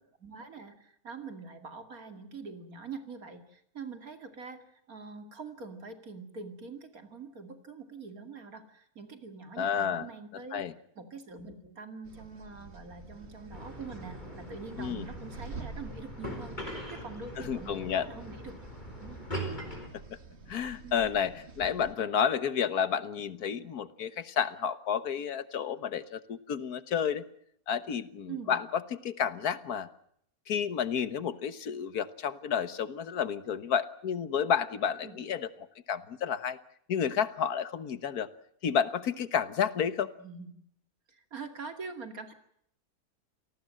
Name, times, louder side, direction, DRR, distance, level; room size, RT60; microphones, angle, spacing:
voice 1, 0.2-10.6 11.0-18.6 18.9-19.2 20.8-21.1 28.3-28.6 35.0-35.2 40.2-40.6 41.1-42.3, right 4 dB, 70° right, 7 dB, 2.8 m, -44 dB
voice 2, 9.6-10.1 10.5-10.7 14.8-15.1 17.4-18.1 19.9-20.2 20.5-27.3 27.7-29.9 30.5-35.5 35.9-36.6 36.9-38.3 38.6-40.1, left 7 dB, 80° left, 14 dB, 1.7 m, -31 dB
sound 1, 12.0-21.9, right 4 dB, 45° right, 1.9 m, -48 dB
sound 2, 13.5-19.9, equal, 30° left, 4.5 m, -41 dB
28.0 x 18.5 x 7.6 m, 0.70 s
omnidirectional pair, 1.6 m